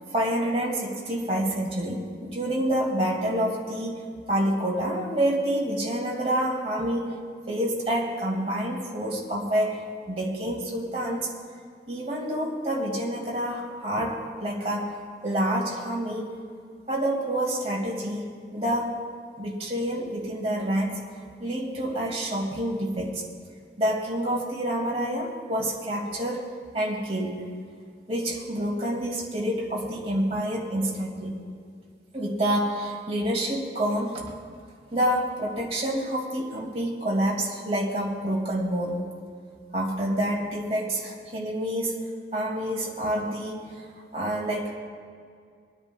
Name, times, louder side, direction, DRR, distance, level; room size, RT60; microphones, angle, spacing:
voice 1, 0.1-7.2 7.5-11.3 11.9-16.3 16.9-19.0 19.4-21.0 21.4-23.2 23.8-27.5 28.1-31.4 32.1-34.2 34.9-39.0 39.7-42.0 42.3-43.9 44.1-44.8, right 1 dB, 35° right, -3 dB, 2.1 m, -28 dB
24.5 x 9.8 x 2.3 m, 2.1 s
head